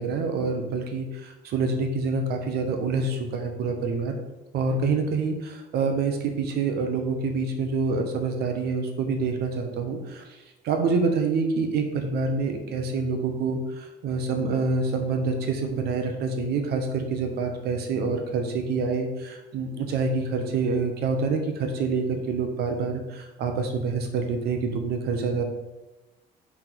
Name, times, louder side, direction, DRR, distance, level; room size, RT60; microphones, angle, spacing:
voice 1, 0.0-4.2 4.5-10.2 10.6-25.4, right 4 dB, 70° right, 5 dB, 1.0 m, -27 dB
6.0 x 3.7 x 4.6 m, 1.0 s
cardioid pair, 110°, 17 cm